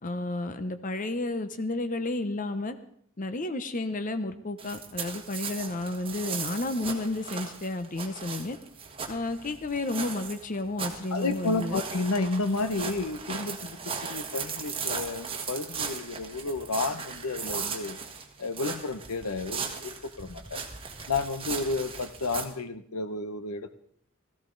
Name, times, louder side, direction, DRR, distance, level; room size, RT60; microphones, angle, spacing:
voice 1, 0.0-2.8 3.2-8.6 9.1-11.8, left 2 dB, 35° left, 10 dB, 0.7 m, -32 dB
sound 1, 4.6-22.4, right 5 dB, 25° right, 1.5 m, -37 dB
voice 2, 11.1-18.0 18.4-20.6 21.1-23.8, left 3 dB, 85° left, 11 dB, 0.9 m, -31 dB
17.0 x 15.0 x 3.9 m, 0.65 s
head